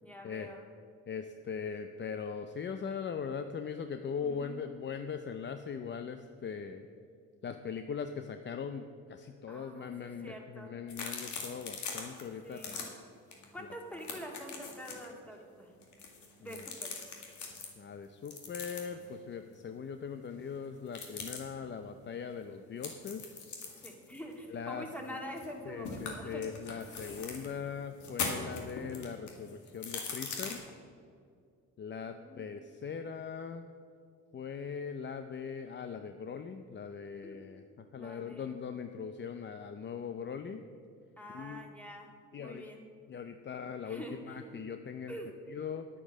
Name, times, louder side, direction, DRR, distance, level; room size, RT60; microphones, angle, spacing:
voice 1, 0.0-0.7 4.2-4.6 9.5-10.8 12.4-12.9 13.5-15.7 16.4-17.1 23.8-26.5 32.0-32.5 37.2-37.4 37.9-38.6 41.2-42.1 42.4-42.8 43.8-44.5 45.1-45.3, equal, 5° left, 1 dB, 1.9 m, -46 dB
voice 2, 1.1-6.9 7.4-12.9 16.5-16.6 17.8-23.4 24.5-24.9 25.7-30.6 31.8-33.7 34.3-37.6 37.9-40.6 41.3-41.6 42.3-42.6 43.1-45.1 45.5-45.9, left 6 dB, 40° left, 8 dB, 0.5 m, -40 dB
sound 1, 10.9-12.2 12.5-12.8 13.3-13.4 13.7-15.1 15.8-17.7 18.3-19.1 20.9-21.4 22.8-25.5 25.8-27.5 28.0-30.5, left 5 dB, 75° left, 2.0 m, -41 dB
10.0 x 8.5 x 6.3 m, 2.3 s
cardioid pair, 90°, 30 cm